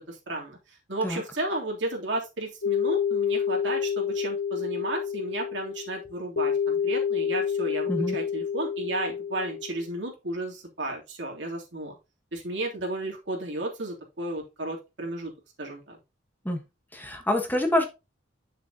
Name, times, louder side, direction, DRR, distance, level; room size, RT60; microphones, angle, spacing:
voice 1, 0.1-12.0 12.3-15.3 15.6-16.0, right 2 dB, 70° right, -1 dB, 3.0 m, -33 dB
sound 1, 2.6-9.9, left 7 dB, 70° left, 0.8 m, -29 dB
voice 2, 16.9-17.8, left 1 dB, 10° left, 3 dB, 1.3 m, -26 dB
9.1 x 6.6 x 2.8 m, 0.26 s
head